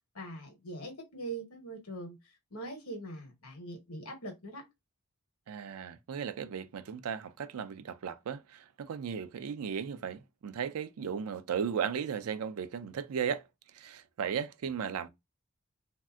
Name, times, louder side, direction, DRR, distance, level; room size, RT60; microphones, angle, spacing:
voice 1, 0.1-2.2 2.5-4.6, right 2 dB, 75° left, 1.1 m, -42 dB
voice 2, 5.5-13.5 13.7-15.1, right 7 dB, 75° right, 0.4 m, -36 dB
3.2 x 2.6 x 2.3 m
head